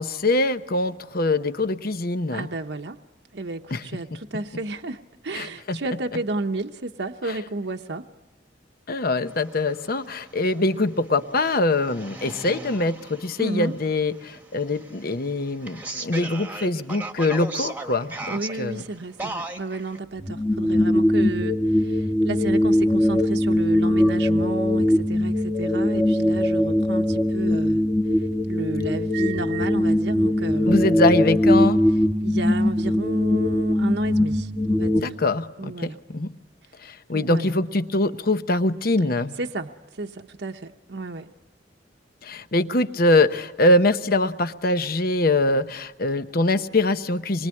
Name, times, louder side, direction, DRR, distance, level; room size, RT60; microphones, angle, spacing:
voice 1, 0.0-2.5 3.7-3.8 5.3-5.8 8.9-18.1 18.6-18.8 30.7-31.8 35.0-36.3 36.8-39.3 42.2-47.5, left 2 dB, 55° left, 10 dB, 0.9 m, -23 dB
voice 2, 2.3-3.0 3.3-8.1 13.4-13.7 18.3-27.8 28.1-31.0 32.2-35.1 35.6-36.0 36.6-36.7 37.1-37.6 39.4-41.3, right 2 dB, 65° right, 4 dB, 0.9 m, -32 dB
sound 1, 9.3-20.0, right 2 dB, 10° right, 1.3 m, -38 dB
sound 2, 20.2-35.0, left 1 dB, 10° left, 1.2 m, -21 dB
26.0 x 23.0 x 9.7 m, 1.0 s
head